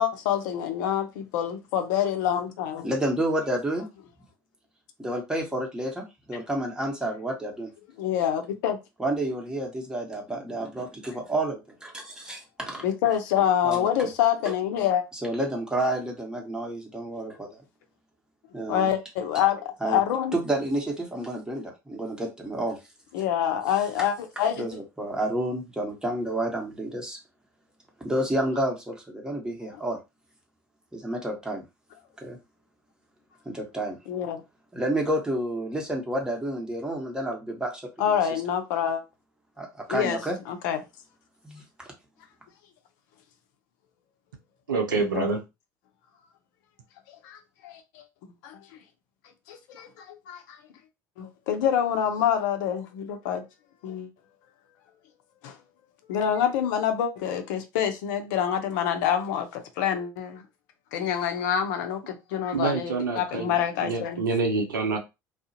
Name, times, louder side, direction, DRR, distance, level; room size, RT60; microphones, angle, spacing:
voice 1, 0.0-2.9 8.0-8.8 12.8-15.0 18.7-20.4 23.1-24.7 34.1-34.4 38.0-39.0 39.9-40.2 40.5-40.8 44.9-45.3 47.1-48.0 48.4-48.6 49.5-50.6 51.2-53.4 53.8-54.1 55.4-55.6 56.1-60.4 60.9-64.2, left 9 dB, 70° left, 0.5 m, -26 dB
voice 2, 2.8-3.9 5.0-7.7 9.0-12.8 13.6-14.1 14.4-14.5 15.2-17.6 18.5-18.9 19.8-20.0 20.3-22.8 24.6-27.2 28.0-30.0 30.9-31.6 32.2-32.4 33.4-34.0 34.7-37.8 38.1-38.2 39.6-40.4 41.4-41.6, right 1 dB, 5° right, 1.1 m, -30 dB
voice 3, 44.7-45.4 62.5-65.0, right 4 dB, 85° right, 0.6 m, -27 dB
2.4 x 2.0 x 2.7 m
hypercardioid pair, 70°, 10 cm